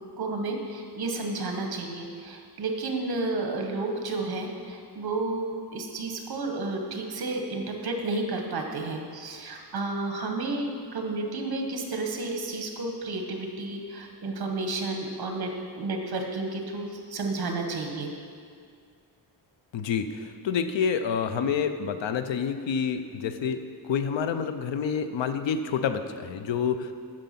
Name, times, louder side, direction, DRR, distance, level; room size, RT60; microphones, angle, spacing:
voice 1, 0.2-18.1, right 2 dB, 55° right, 3 dB, 1.2 m, -31 dB
voice 2, 19.7-26.9, left 6 dB, 85° left, 9 dB, 0.7 m, -28 dB
9.0 x 6.5 x 5.8 m, 2.2 s
wide cardioid pair, 160°, 44 cm